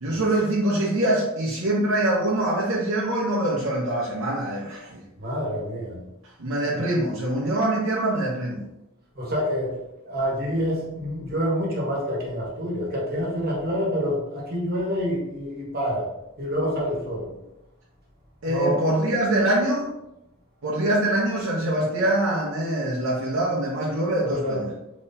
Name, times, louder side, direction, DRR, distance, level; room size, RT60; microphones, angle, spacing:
voice 1, 0.0-5.0 6.4-8.6 18.4-19.9 20.6-24.7, right 1 dB, 70° right, -4 dB, 0.6 m, -24 dB
voice 2, 5.2-6.0 9.2-16.1 16.4-17.3 18.4-18.9 24.3-24.6, equal, 45° right, -3 dB, 1.1 m, -27 dB
3.9 x 2.9 x 2.6 m, 0.87 s
head